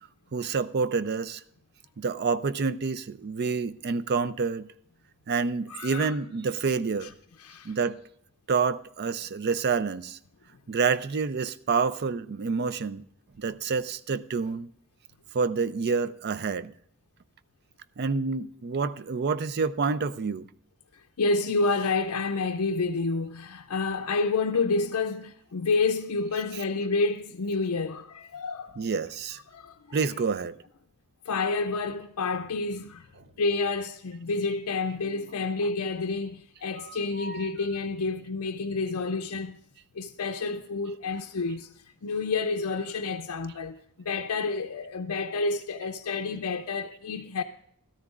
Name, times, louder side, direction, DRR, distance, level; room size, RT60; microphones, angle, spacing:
voice 1, 0.3-1.4 2.0-4.7 5.3-7.1 7.6-8.0 8.5-10.2 10.7-13.0 13.4-14.7 15.3-16.7 18.0-20.4 26.5-26.6 28.8-29.4 29.9-30.6 33.2-33.3 35.6-35.7 36.8-37.5, right 5 dB, 45° right, 0.4 m, -28 dB
voice 2, 5.7-6.2 7.4-7.8 20.9-28.9 29.5-30.0 31.3-33.1 33.4-39.6 39.9-41.7 42.0-47.4, left 3 dB, 70° left, 0.5 m, -29 dB
13.5 x 13.0 x 2.4 m
head